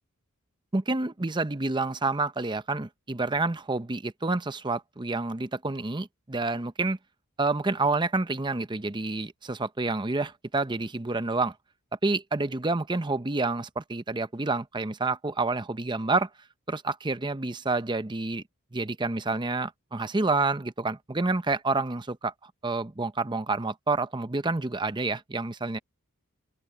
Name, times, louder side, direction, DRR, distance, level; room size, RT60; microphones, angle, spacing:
voice 1, 0.7-7.0 7.4-11.5 12.0-16.3 16.7-18.4 18.7-25.8, right 3 dB, 20° right, 0.7 m, -28 dB
open air
head